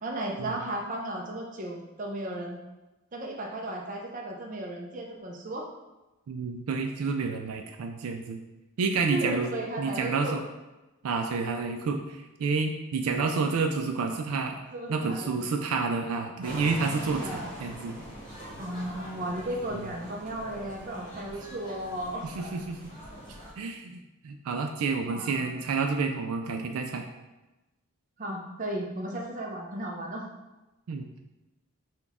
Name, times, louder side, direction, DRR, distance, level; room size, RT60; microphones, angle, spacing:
voice 1, 0.0-2.6 3.1-5.6 9.1-10.4 14.7-15.4 17.2-17.6 18.6-22.3 25.1-25.5 28.2-30.3, right 1 dB, 35° right, -1 dB, 0.6 m, -35 dB
voice 2, 6.3-8.4 8.8-9.5 9.8-10.4 11.0-14.6 14.9-18.0 19.7-19.9 22.2-22.9 23.6-23.9 24.2-27.1 30.9-31.2, right 4 dB, 75° right, 4 dB, 0.4 m, -29 dB
sound 1, 16.4-23.5, equal, 20° left, 1.1 m, -42 dB
6.0 x 2.3 x 3.5 m, 1.1 s
head